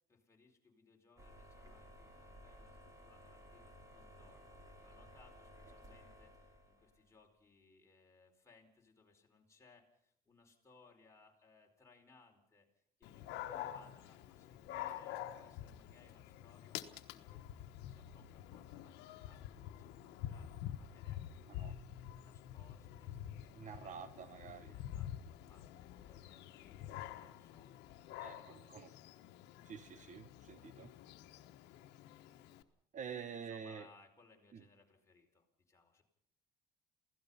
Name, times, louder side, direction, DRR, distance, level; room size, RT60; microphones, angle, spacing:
voice 1, 0.1-21.8 22.2-24.0 24.7-29.0 33.1-36.0, left 3 dB, 15° left, 0 dB, 4.7 m, -67 dB
sound 1, 1.2-7.1, equal, 20° right, 4.4 m, -57 dB
Dog, 13.0-32.6, left 11 dB, 90° left, 1.2 m, -48 dB
voice 2, 23.5-24.7 28.2-28.9 29.6-30.9 32.9-33.9 34.5-34.6, right 7 dB, 45° right, 13 dB, 1.1 m, -48 dB
28.0 x 16.5 x 5.6 m, 0.70 s
cardioid pair, 110°, 17 cm